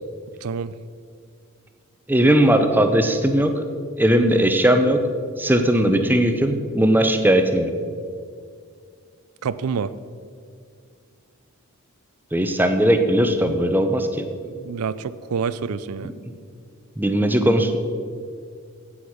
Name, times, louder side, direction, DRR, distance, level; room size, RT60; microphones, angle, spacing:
voice 1, 0.4-0.7 9.4-9.9 14.4-16.1, right 6 dB, 90° right, 16 dB, 0.5 m, -27 dB
voice 2, 2.1-3.6 4.0-5.0 5.4-7.7 12.3-14.3 17.0-17.8, right 1 dB, 10° right, 6 dB, 0.6 m, -18 dB
8.7 x 8.3 x 6.4 m, 2.2 s
head